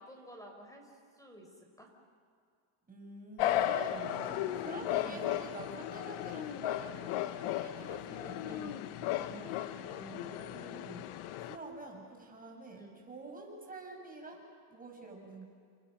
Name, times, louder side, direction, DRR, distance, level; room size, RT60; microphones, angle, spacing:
voice 1, 0.0-1.5 1.8-1.9 5.0-5.3 8.1-8.8 9.2-9.6 12.7-13.0, right 2 dB, 5° left, 3 dB, 5.2 m, -51 dB
voice 2, 2.9-8.2 8.5-8.6 9.8-11.0 11.4-14.4 14.7-15.5, right 3 dB, 15° right, 1 dB, 6.8 m, -48 dB
sound 1, 3.4-11.6, left 12 dB, 85° left, 1.5 m, -35 dB
29.5 x 28.0 x 6.6 m, 2.3 s
cardioid pair, 125°, 49 cm